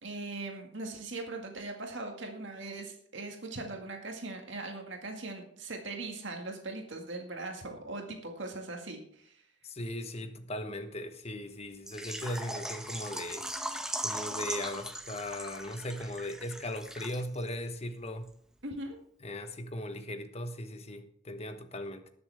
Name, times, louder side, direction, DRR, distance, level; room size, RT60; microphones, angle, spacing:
voice 1, 0.0-9.4 18.6-19.0, right 2 dB, 65° right, 2.0 m, -40 dB
voice 2, 9.6-13.5 14.0-18.3 19.2-22.1, left 1 dB, 30° left, 1.1 m, -38 dB
Water / Liquid, 11.9-17.5 17.7-17.8 18.3-18.4, right 1 dB, 5° right, 0.9 m, -39 dB
20.0 x 7.0 x 3.5 m
head